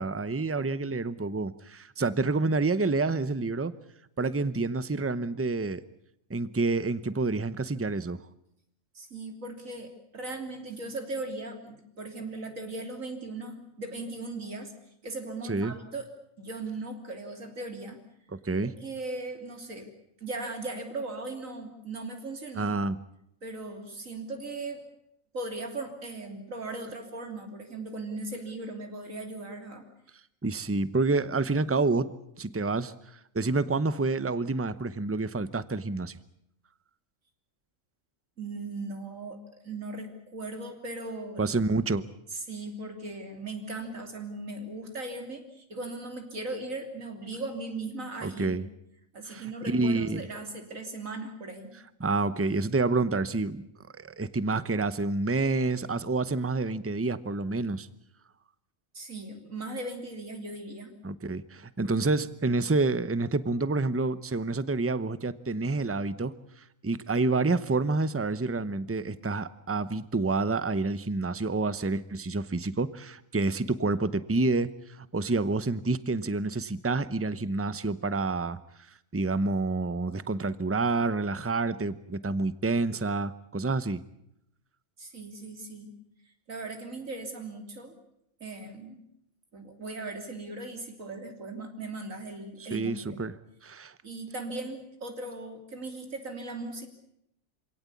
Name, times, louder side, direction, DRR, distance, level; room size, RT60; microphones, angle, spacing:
voice 1, 0.0-3.7 4.2-5.8 6.3-8.2 15.5-15.7 18.4-18.7 22.6-23.0 30.4-32.9 33.3-36.2 41.4-42.0 48.2-48.7 49.3-50.2 52.0-53.6 53.9-57.9 61.0-66.3 66.8-74.7 75.0-78.6 79.1-84.0 92.6-93.3 93.6-93.9, right 3 dB, 15° right, 15 dB, 0.7 m, -28 dB
voice 2, 9.0-14.7 15.0-16.1 16.4-18.0 18.6-19.9 20.2-22.8 23.4-24.8 25.3-29.9 38.4-41.4 42.3-48.6 49.1-51.7 58.9-60.9 85.0-85.9 86.5-88.0 88.4-89.0 89.5-93.2 94.0-96.9, right 2 dB, 75° right, 4 dB, 3.6 m, -38 dB
27.0 x 17.5 x 8.5 m, 0.77 s
omnidirectional pair, 1.4 m